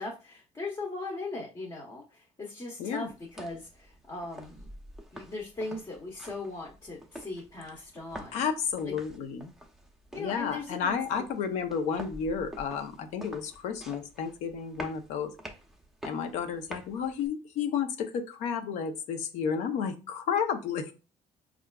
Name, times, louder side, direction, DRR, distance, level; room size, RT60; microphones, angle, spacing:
voice 1, 0.0-4.7 5.1-8.4 8.8-8.9 10.1-11.2, left 2 dB, 30° left, -1 dB, 0.8 m, -39 dB
sound 1, 3.0-17.3, equal, 5° right, 0.6 m, -48 dB
voice 2, 8.3-9.5 10.1-15.3 16.0-20.9, left 7 dB, 85° left, 7 dB, 0.6 m, -32 dB
4.6 x 2.4 x 2.2 m, 0.32 s
cardioid pair, 100°, 12 cm